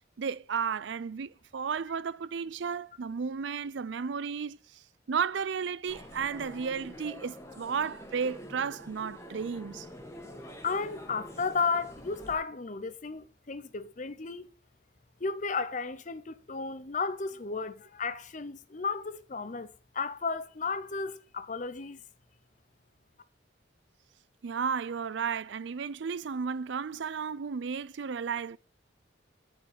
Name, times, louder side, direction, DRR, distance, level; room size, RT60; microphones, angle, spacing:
voice 1, 0.2-9.9 24.4-28.6, right 6 dB, 65° right, 0.4 m, -33 dB
sound 1, 5.9-12.4, equal, 15° left, 1.6 m, -46 dB
voice 2, 10.6-14.5 15.2-19.7 19.9-22.0, left 4 dB, 40° left, 0.7 m, -33 dB
9.8 x 4.6 x 7.8 m
head